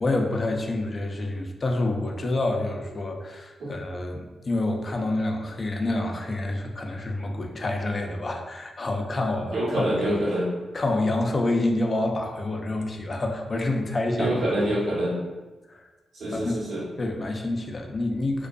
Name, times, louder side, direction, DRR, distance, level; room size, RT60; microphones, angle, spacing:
voice 1, 0.0-10.2 10.7-14.3 15.7-15.8 16.3-16.5 17.0-18.5, left 2 dB, 45° left, 2 dB, 0.4 m, -27 dB
voice 2, 9.5-10.5 14.2-15.2 16.1-16.8, right 1 dB, 75° right, -6 dB, 0.9 m, -26 dB
2.5 x 2.1 x 2.3 m, 1.2 s
cardioid pair, 55°, 0 cm